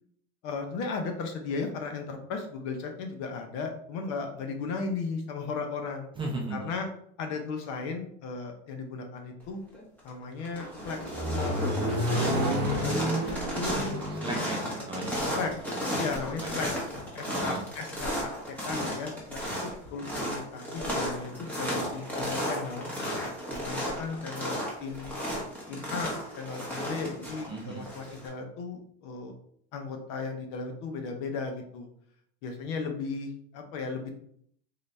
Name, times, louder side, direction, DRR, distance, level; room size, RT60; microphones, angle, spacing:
voice 1, 0.4-6.1 6.5-6.9 7.2-9.6 10.0-11.6 11.8-13.7 14.6-14.7 15.3-15.5 16.0-16.7 17.1-22.9 23.5-25.2 25.7-29.3 29.7-31.9 32.4-34.2, left 4 dB, 50° left, 4 dB, 0.9 m, -36 dB
voice 2, 6.2-6.6 14.1-14.6 14.9-15.2 16.4-16.5 17.3-17.6 27.5-27.8, right 2 dB, 15° right, -1 dB, 0.6 m, -35 dB
sound 1, 9.7-10.1 10.4-28.3, equal, 5° left, 1.2 m, -34 dB
Accelerating revving vroom, 10.5-16.6, equal, 30° right, 1.1 m, -31 dB
3.9 x 2.6 x 3.3 m, 0.65 s
supercardioid pair, 150°, 35 cm